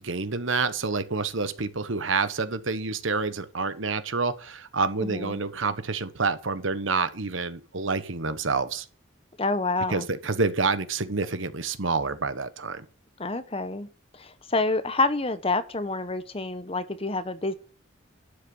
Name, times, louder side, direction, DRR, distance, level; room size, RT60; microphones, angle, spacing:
voice 1, 0.0-8.9 9.9-12.8, right 4 dB, 75° right, 1.2 m, -28 dB
voice 2, 5.0-5.4 9.4-10.1 13.2-13.9 14.1-17.5, left 3 dB, 30° left, 1.0 m, -28 dB
11.5 x 6.5 x 7.1 m
head